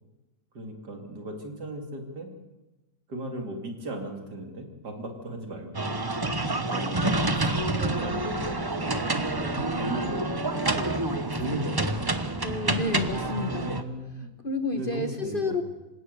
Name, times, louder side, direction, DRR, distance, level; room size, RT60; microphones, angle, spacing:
voice 1, 0.5-2.3 3.1-5.9 6.5-11.1 11.3-12.1 13.4-14.4 14.7-15.6, right 1 dB, 70° right, 4 dB, 3.3 m, -36 dB
sound 1, 5.7-13.8, right 2 dB, 20° right, 0.8 m, -28 dB
voice 2, 12.4-13.7 14.4-15.6, left 2 dB, 35° left, 8 dB, 1.3 m, -30 dB
27.0 x 16.5 x 6.8 m, 1.1 s
omnidirectional pair, 1.8 m